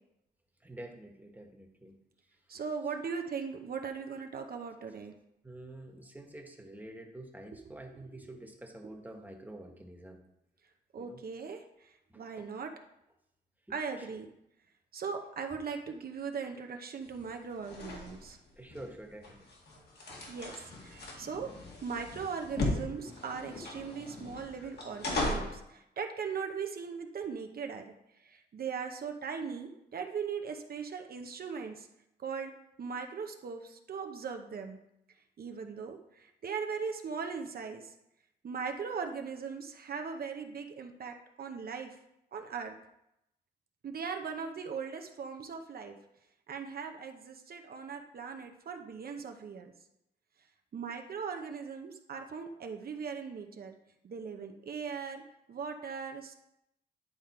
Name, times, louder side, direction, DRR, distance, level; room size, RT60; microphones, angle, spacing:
voice 1, 0.6-2.0 2.3-2.6 5.4-10.2 11.0-11.2 12.1-12.6 13.7-14.2 18.6-19.5, right 1 dB, 10° right, 2 dB, 1.4 m, -48 dB
voice 2, 2.5-5.1 10.9-12.7 13.7-14.3 14.9-18.4 20.3-21.5 21.8-27.8 28.2-31.9 32.2-32.5 32.8-34.8 35.4-37.9 38.4-42.0 42.3-42.7 43.8-46.0 46.5-49.7 50.7-53.8 54.0-55.2 55.5-56.3, right 6 dB, 60° right, 4 dB, 0.8 m, -39 dB
sound 1, 17.0-25.6, left 2 dB, 65° left, 1.9 m, -38 dB
10.5 x 3.6 x 4.4 m, 0.83 s
cardioid pair, 65°, 18 cm